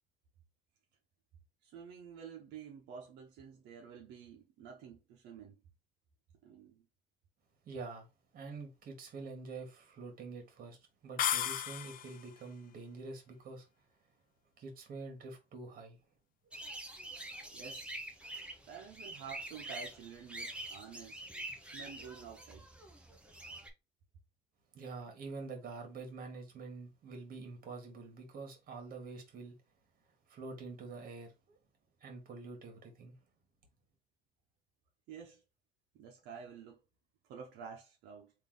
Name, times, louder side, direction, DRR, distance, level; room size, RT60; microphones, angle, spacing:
voice 1, 1.6-5.6 6.4-6.9 17.5-17.9 18.7-21.2 21.7-22.7 35.1-35.4 35.9-36.8 37.2-38.3, right 7 dB, 85° right, 0.9 m, -50 dB
voice 2, 7.7-8.1 8.3-13.7 14.6-16.0 16.5-16.6 24.7-29.6 30.3-31.6 32.0-33.2, right 3 dB, 55° right, 1.7 m, -46 dB
sound 1, 11.2-12.3, left 10 dB, 55° left, 0.4 m, -34 dB
sound 2, 16.5-23.7, right 1 dB, 5° right, 0.9 m, -46 dB
3.5 x 2.8 x 3.9 m
cardioid pair, 110°, 17 cm